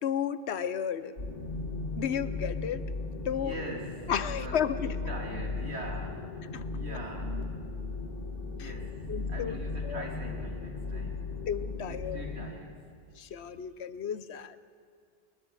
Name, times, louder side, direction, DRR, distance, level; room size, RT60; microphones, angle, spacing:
voice 1, 0.0-1.1 2.0-2.8 3.2-3.6 4.1-4.9 6.5-6.6 8.6-8.7 9.1-9.6 9.8-10.1 10.9-11.1 11.5-12.2 13.2-14.6, left 8 dB, 90° left, 14 dB, 1.1 m, -33 dB
sound 1, 1.2-12.5, left 3 dB, 60° left, 2.0 m, -37 dB
voice 2, 3.3-6.4 6.7-7.6 8.5-11.4 11.9-12.9, right 1 dB, 85° right, 0 dB, 3.1 m, -42 dB
21.0 x 21.0 x 8.0 m, 2.2 s
omnidirectional pair, 1.1 m